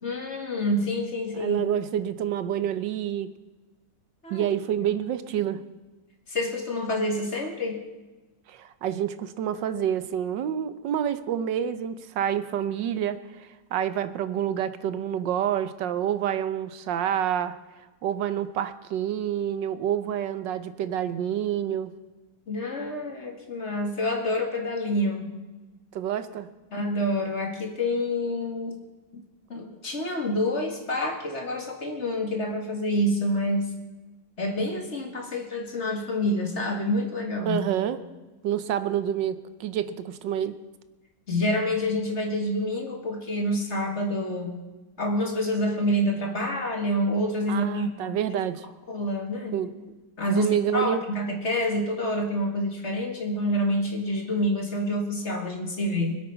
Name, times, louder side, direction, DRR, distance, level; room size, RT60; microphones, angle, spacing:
voice 1, 0.0-1.6 4.2-4.5 6.3-7.8 22.5-25.3 26.7-28.8 29.1-29.2 29.5-33.7 34.4-37.6 41.3-44.6 45.0-48.1 48.9-49.6 50.2-56.2, left 1 dB, 40° left, 3 dB, 2.2 m, -27 dB
voice 2, 1.3-3.3 4.3-5.6 8.5-17.6 18.0-21.9 25.9-26.5 37.5-38.0 38.4-40.5 47.5-48.7 49.5-49.8 50.3-51.0, right 10 dB, 90° right, 12 dB, 1.5 m, -28 dB
25.0 x 8.4 x 5.7 m, 1.2 s
omnidirectional pair, 1.9 m